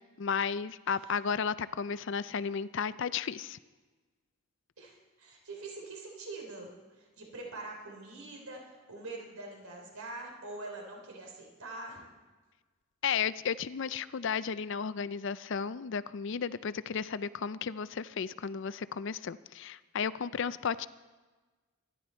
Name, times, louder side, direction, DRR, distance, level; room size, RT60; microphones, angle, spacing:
voice 1, 0.0-3.6 13.0-20.9, left 6 dB, 55° left, 15 dB, 0.4 m, -33 dB
voice 2, 4.8-6.7 7.0-12.1, right 2 dB, 85° right, 1 dB, 3.5 m, -44 dB
25.0 x 10.5 x 4.4 m, 1.3 s
head